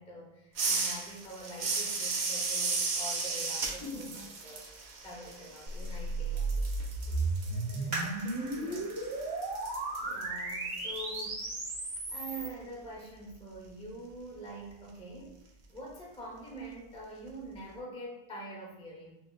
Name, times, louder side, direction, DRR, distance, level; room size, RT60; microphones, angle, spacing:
voice 1, 0.0-6.7 7.1-7.2 10.0-11.5 12.1-15.3 15.7-19.1, right 1 dB, 5° left, 0.5 m, -45 dB
sound 1, 0.5-6.1 6.4-11.2, right 4 dB, 65° right, 0.4 m, -35 dB
voice 2, 3.8-4.2 7.5-9.4, left 2 dB, 90° left, 1.1 m, -46 dB
sound 2, 5.7-12.5, right 2 dB, 85° right, 1.9 m, -34 dB
sound 3, 7.9-11.3 11.9-12.0 12.6-13.0 13.4-13.5, right 2 dB, 45° right, 1.9 m, -43 dB
5.8 x 2.2 x 2.4 m
omnidirectional pair, 1.4 m